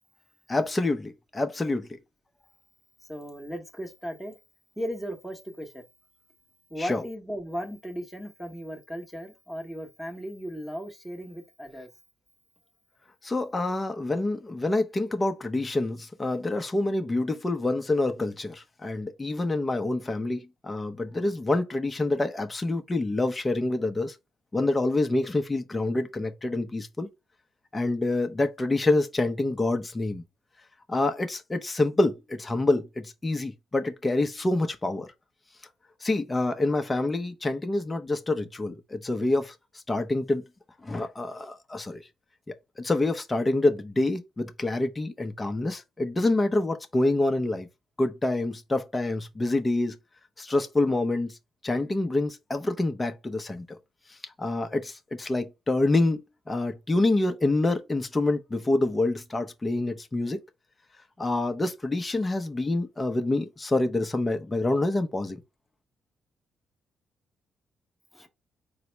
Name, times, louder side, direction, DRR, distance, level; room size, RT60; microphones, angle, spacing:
voice 1, 0.5-1.9 6.8-7.0 13.2-24.2 24.5-27.1 27.7-30.2 30.9-35.1 36.0-39.5 39.9-40.4 40.8-42.0 42.5-47.7 48.0-50.0 50.4-51.4 51.6-53.8 54.1-60.4 61.2-65.4, left 2 dB, 20° left, 0.6 m, -27 dB
voice 2, 3.1-4.3 4.8-5.8 6.7-11.9 68.1-68.3, equal, 5° right, 0.9 m, -36 dB
4.0 x 2.0 x 4.4 m
cardioid pair, 90°, 0 cm